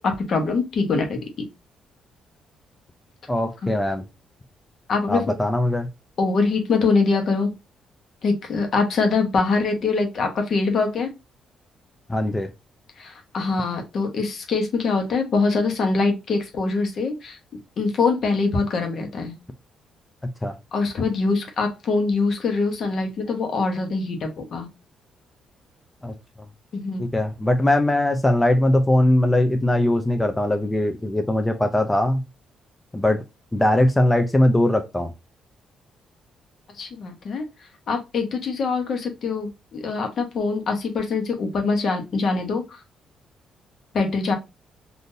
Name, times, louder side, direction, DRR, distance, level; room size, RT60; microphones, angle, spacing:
voice 1, 0.0-1.5 3.6-3.7 4.9-5.4 6.2-7.5 8.2-11.1 13.0-17.4 17.8-19.3 20.7-24.7 26.7-27.0 36.7-37.5 37.9-42.8 43.9-44.3, left 4 dB, 55° left, 4 dB, 0.9 m, -23 dB
voice 2, 3.3-4.1 5.1-5.9 12.1-12.5 20.4-20.5 26.0-26.1 27.0-32.2 32.9-33.2 33.5-35.1, left 1 dB, 10° left, 6 dB, 0.4 m, -20 dB
3.7 x 2.6 x 2.6 m, 0.24 s
cardioid pair, 90°, 0 cm